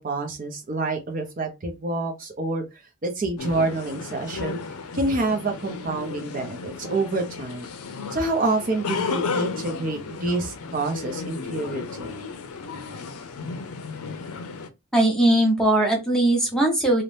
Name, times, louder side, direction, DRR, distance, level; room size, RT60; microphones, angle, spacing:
voice 1, 0.0-4.6 4.9-7.7 8.1-12.2, right 2 dB, 40° right, 3 dB, 0.5 m, -27 dB
sound 1, 3.4-14.7, left 4 dB, 85° left, 0.4 m, -34 dB
voice 2, 14.9-17.0, right 1 dB, 5° left, -1 dB, 0.6 m, -19 dB
2.6 x 2.0 x 3.2 m, 0.23 s
head